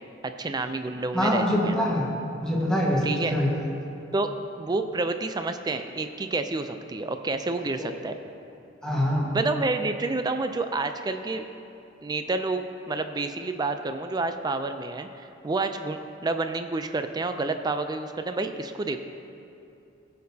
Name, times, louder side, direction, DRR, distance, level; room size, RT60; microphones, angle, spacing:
voice 1, 0.0-1.8 3.0-3.4 4.1-4.3 4.6-8.2 9.3-11.4 12.0-19.0, right 3 dB, 20° right, 8 dB, 0.4 m, -29 dB
voice 2, 1.1-2.0 2.4-3.5 7.8-7.9 8.8-9.3, equal, 5° left, -5 dB, 1.4 m, -24 dB
16.0 x 6.6 x 2.8 m, 2.8 s
head